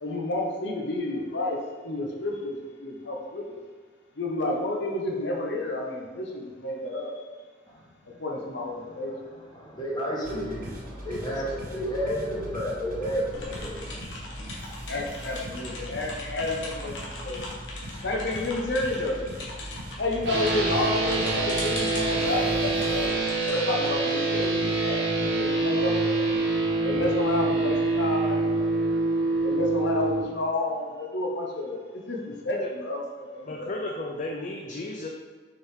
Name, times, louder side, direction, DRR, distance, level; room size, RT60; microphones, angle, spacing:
voice 1, 0.0-3.6 4.2-7.1 8.2-9.1 14.9-17.4 18.0-19.2 20.0-23.2 23.5-24.5 24.8-25.0 25.3-26.2 26.8-28.4 29.4-33.7, left 2 dB, 65° left, -1 dB, 1.0 m, -30 dB
voice 2, 9.1-14.0, equal, 25° left, -5 dB, 1.5 m, -31 dB
sound 1, 10.2-23.1, equal, 50° right, 1.3 m, -40 dB
sound 2, 13.3-24.9, left 2 dB, 90° left, 1.5 m, -41 dB
sound 3, 20.2-30.2, right 2 dB, 75° right, 1.5 m, -25 dB
voice 3, 33.5-35.1, left 2 dB, 40° left, 0 dB, 0.5 m, -34 dB
6.3 x 4.6 x 3.7 m, 1.5 s
head